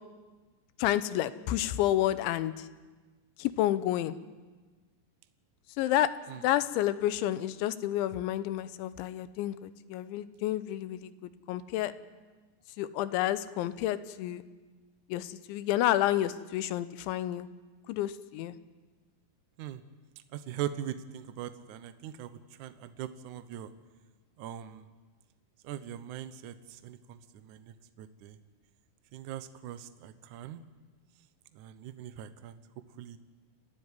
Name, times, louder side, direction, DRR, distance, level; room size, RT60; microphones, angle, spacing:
voice 1, 0.8-2.7 3.4-4.2 5.8-6.1 6.4-11.1 11.5-11.9 12.8-14.4 15.1-17.5 17.9-18.6, left 13 dB, 90° left, 13 dB, 3.2 m, -30 dB
voice 2, 20.3-23.7 24.4-24.9 25.6-28.4 29.1-30.6 31.5-32.6 33.0-33.2, right 11 dB, 85° right, 10 dB, 1.7 m, -41 dB
30.0 x 13.0 x 9.8 m, 1.3 s
omnidirectional pair, 5.2 m